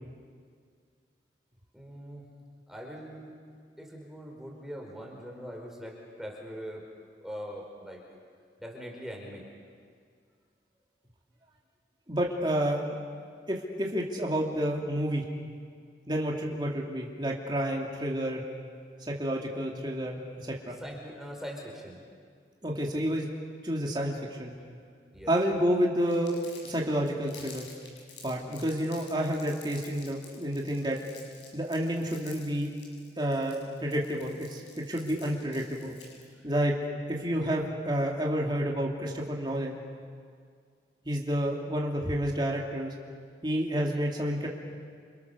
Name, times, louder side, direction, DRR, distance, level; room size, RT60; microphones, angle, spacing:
voice 1, 1.7-2.3 2.7-3.3 3.8-6.9 7.2-8.0 8.6-9.4 20.8-22.0 25.1-25.3 36.4-36.5 43.9-44.0, equal, ahead, -1 dB, 5.0 m, -42 dB
voice 2, 12.1-12.8 13.5-15.2 16.1-18.4 19.1-20.8 22.6-23.3 23.6-24.5 25.3-26.4 26.6-27.6 28.2-31.0 31.5-32.7 33.2-34.6 34.9-35.9 36.4-36.7 37.1-39.8 41.0-42.9 43.4-44.5, equal, 25° right, -2 dB, 2.8 m, -29 dB
Crumpling crinkling, 26.1-36.3, left 5 dB, 80° left, 7.9 m, -51 dB
30.0 x 28.5 x 6.9 m, 2.1 s
head